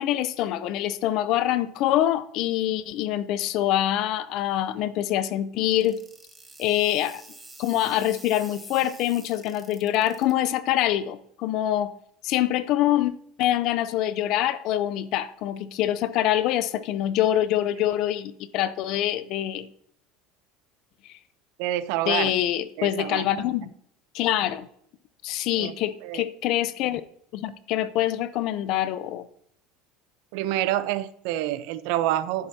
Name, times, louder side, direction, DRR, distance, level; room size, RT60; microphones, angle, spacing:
voice 1, 0.0-6.0 6.6-7.2 7.6-11.9 12.2-13.1 13.4-19.7 22.1-23.7 24.1-24.7 25.2-27.0 27.3-29.2, left 12 dB, 50° left, 0.6 m, -25 dB
sound 1, 5.7-10.3, right 2 dB, 10° right, 1.5 m, -47 dB
voice 2, 21.6-22.3 22.8-23.3 25.6-25.7 26.0-26.2 30.3-32.5, right 13 dB, 65° right, 0.7 m, -27 dB
11.5 x 10.5 x 2.8 m
cardioid pair, 165°, 0 cm